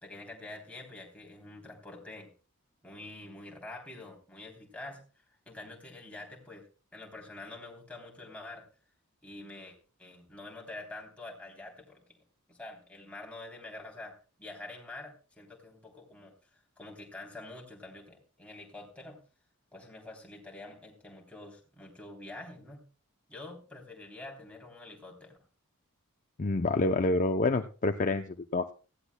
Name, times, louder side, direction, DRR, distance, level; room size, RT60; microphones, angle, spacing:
voice 1, 0.0-2.3 2.8-5.0 5.5-8.7 9.2-12.2 12.5-16.3 16.8-19.2 19.7-22.8 23.3-25.4, left 2 dB, 5° left, -1 dB, 3.5 m, -46 dB
voice 2, 26.4-28.7, left 2 dB, 35° left, 7 dB, 0.6 m, -28 dB
18.0 x 15.5 x 2.3 m, 0.36 s
head